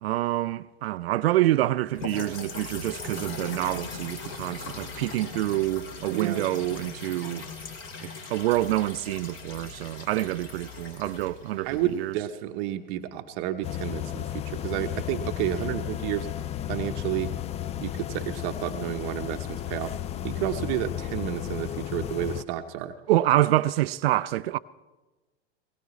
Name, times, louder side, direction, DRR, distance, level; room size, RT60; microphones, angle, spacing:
voice 1, 0.0-7.5 8.0-12.1 23.1-24.6, right 15 dB, 70° right, 0.5 m, -26 dB
sound 1, 1.9-12.1, left 4 dB, 40° left, 2.6 m, -40 dB
voice 2, 6.1-6.4 11.6-16.3 16.7-17.3 17.8-19.9 20.2-22.9, right 12 dB, 50° right, 0.9 m, -31 dB
sound 2, 13.6-22.4, left 11 dB, 20° left, 0.4 m, -33 dB
20.5 x 18.0 x 3.1 m
hypercardioid pair, 100°, 32 cm